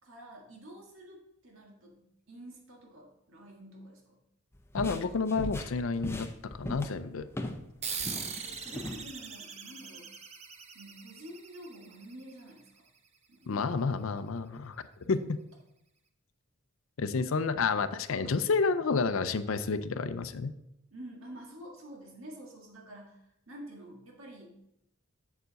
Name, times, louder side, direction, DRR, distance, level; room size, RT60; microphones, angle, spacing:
voice 1, 0.0-4.2 8.4-10.1 10.7-12.9 13.3-13.7 20.9-24.6, right 1 dB, 90° right, 0 dB, 1.7 m, -49 dB
sound 1, 4.5-7.7 8.0-9.0, left 1 dB, 10° left, 0.6 m, -38 dB
voice 2, 4.7-7.3 13.5-14.8 15.1-15.4 17.0-20.5, left 4 dB, 90° left, 11 dB, 0.5 m, -30 dB
sound 2, 7.8-12.8, right 6 dB, 35° right, 0.7 m, -41 dB
7.7 x 6.9 x 4.0 m, 0.79 s
head